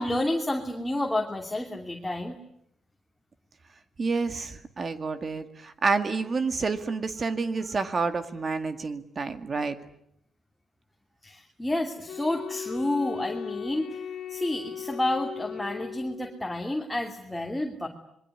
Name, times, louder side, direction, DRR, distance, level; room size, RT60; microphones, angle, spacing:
voice 1, 0.0-2.4 11.2-14.0 14.3-17.9, left 1 dB, 10° left, 2 dB, 2.7 m, -30 dB
voice 2, 4.0-9.8, right 4 dB, 40° right, 8 dB, 2.1 m, -29 dB
Wind instrument woodwind instrument, 12.1-16.5, left 8 dB, 75° left, 2.3 m, -38 dB
26.5 x 22.5 x 9.8 m, 0.76 s
cardioid pair, 105°, 0 cm